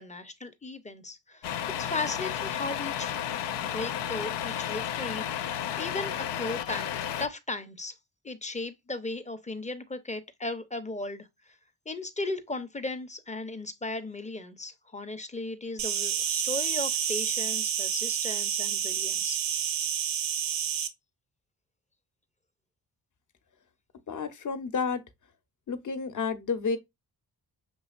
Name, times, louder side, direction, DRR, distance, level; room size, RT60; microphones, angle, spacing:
voice 1, 0.0-1.5 1.8-3.2 3.6-7.9 8.2-11.3 11.9-19.4, left 2 dB, 15° left, 0.7 m, -36 dB
Truck, 1.4-7.3, left 9 dB, 70° left, 0.5 m, -32 dB
Insect, 15.8-20.9, right 9 dB, 85° right, 0.8 m, -29 dB
voice 2, 24.1-25.0 25.7-26.8, left 5 dB, 45° left, 0.9 m, -30 dB
6.1 x 2.8 x 2.4 m
cardioid pair, 65°, 44 cm